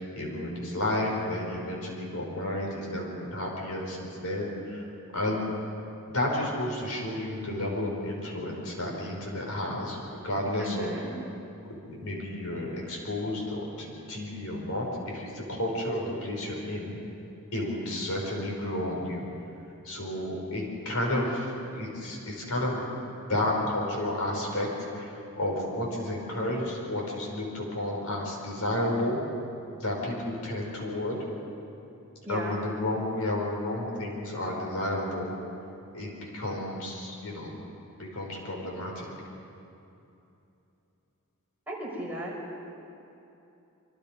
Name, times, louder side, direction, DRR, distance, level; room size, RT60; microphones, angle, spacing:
voice 1, 0.2-4.9 5.1-5.5 6.1-10.9 11.7-17.0 17.5-19.2 19.8-24.7 24.9-29.2 29.8-31.2 32.3-35.3 35.9-37.5 38.0-39.1, left 1 dB, 75° left, -1 dB, 5.5 m, -31 dB
voice 2, 10.6-11.1 32.2-32.6 41.7-42.3, right 1 dB, 10° right, -4 dB, 5.1 m, -36 dB
26.5 x 24.5 x 5.3 m, 2.8 s
head